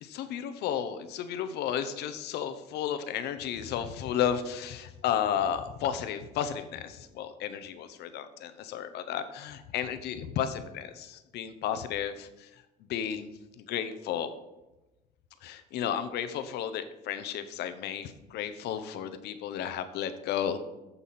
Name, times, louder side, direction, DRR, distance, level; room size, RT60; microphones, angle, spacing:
voice 1, 0.0-12.5 12.9-13.3 13.6-14.3 15.4-20.6, left 9 dB, 80° left, 11 dB, 0.9 m, -33 dB
14.0 x 5.6 x 4.3 m, 1.0 s
cardioid pair, 110°, 17 cm